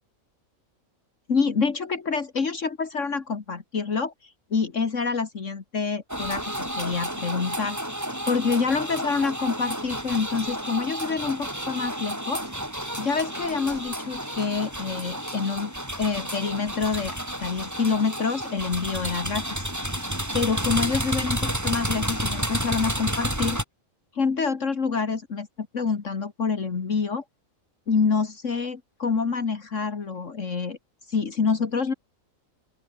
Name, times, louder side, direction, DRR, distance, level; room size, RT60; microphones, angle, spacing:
voice 1, 1.3-7.8 8.3-12.4 13.0-15.7 16.0-19.6 20.3-23.6 24.1-27.2 27.9-30.8 31.1-31.9, left 5 dB, 60° left, 2.2 m, -27 dB
sound 1, 6.1-23.6, equal, 10° right, 5.5 m, -31 dB
open air
omnidirectional pair, 1.4 m